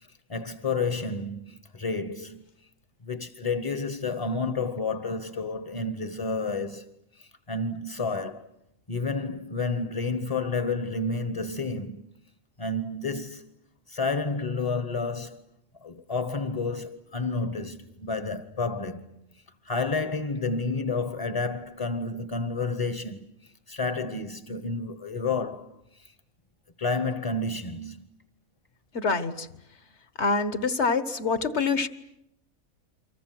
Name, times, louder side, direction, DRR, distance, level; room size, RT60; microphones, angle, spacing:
voice 1, 0.0-2.4 3.0-6.8 7.2-8.5 8.9-12.0 12.6-13.5 13.9-15.4 15.8-19.1 19.6-23.2 23.7-25.7 26.0-26.1 26.8-28.1, left 3 dB, 25° left, 1.1 m, -30 dB
voice 2, 28.9-29.5 30.2-31.9, left 4 dB, 55° left, 1.6 m, -25 dB
29.5 x 25.0 x 7.7 m
omnidirectional pair, 1.4 m